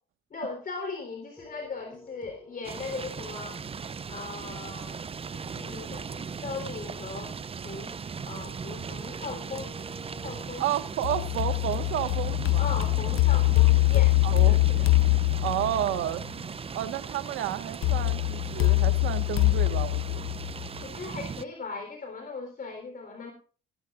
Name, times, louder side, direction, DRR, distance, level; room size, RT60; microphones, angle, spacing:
voice 1, 0.3-3.6 4.1-5.0 5.3-7.3 7.6-7.9 8.3-9.7 10.2-10.7 12.6-14.9 20.8-23.3, left 4 dB, 45° left, 3 dB, 3.8 m, -38 dB
sound 1, 1.4-10.4, left 1 dB, 5° left, 4.3 m, -52 dB
sound 2, 2.6-21.4, right 6 dB, 30° right, 0.6 m, -38 dB
voice 2, 10.6-12.7 14.2-14.6 15.4-16.2 16.7-20.2, right 12 dB, 90° right, 10 dB, 1.6 m, -31 dB
sound 3, 11.0-16.0 17.8-20.8, left 23 dB, 90° left, 0.5 m, -23 dB
17.5 x 13.0 x 2.5 m, 0.39 s
cardioid pair, 90°, 20 cm